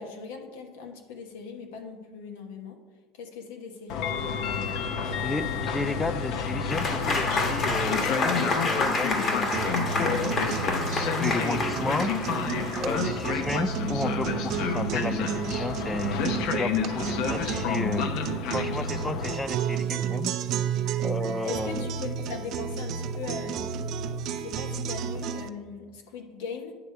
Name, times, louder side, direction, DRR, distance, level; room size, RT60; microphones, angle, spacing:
voice 1, 0.0-2.8 3.2-4.8 21.4-23.7 23.9-26.7, left 5 dB, 85° left, 4 dB, 1.1 m, -40 dB
Train, 3.9-19.3, left 6 dB, 65° left, 0.7 m, -30 dB
voice 2, 5.2-9.7 9.9-10.5 10.8-12.1 12.8-16.2 16.5-18.1 18.5-20.3 21.0-21.9, left 2 dB, 15° left, 14 dB, 0.4 m, -33 dB
Applause / Crowd, 6.7-13.5, left 2 dB, 35° left, 1.3 m, -29 dB
sound 1, 9.5-25.5, right 7 dB, 55° right, 0.5 m, -32 dB
9.6 x 3.3 x 6.7 m, 1.4 s
supercardioid pair, 110°, 0 cm